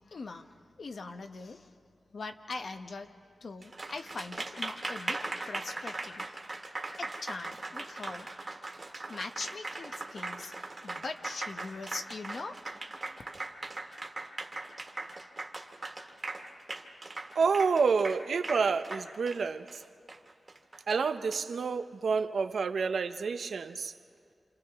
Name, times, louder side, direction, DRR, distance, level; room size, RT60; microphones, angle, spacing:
voice 1, 0.1-1.7 2.1-6.3 7.0-8.3 8.7-10.5 10.8-12.5, left 3 dB, 65° left, 6 dB, 1.0 m, -42 dB
Applause, 3.6-21.4, right 2 dB, 40° right, 1.7 m, -39 dB
voice 2, 17.3-19.8 20.9-23.9, right 5 dB, 85° right, 9 dB, 0.7 m, -29 dB
29.0 x 28.0 x 3.6 m, 2.3 s
wide cardioid pair, 120°, 0 cm